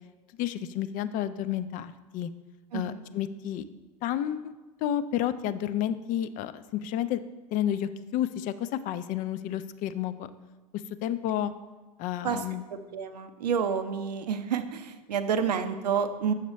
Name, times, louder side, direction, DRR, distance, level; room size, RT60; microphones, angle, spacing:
voice 1, 0.4-2.3 2.7-3.6 4.0-4.5 4.8-7.2 7.5-10.3 11.0-11.5 12.0-12.6, left 11 dB, 40° left, 13 dB, 0.4 m, -30 dB
voice 2, 2.7-3.0 12.2-12.4 12.7-16.3, right 7 dB, 85° right, 9 dB, 0.6 m, -29 dB
6.9 x 6.5 x 3.2 m, 1.2 s
hypercardioid pair, 95°, 20 cm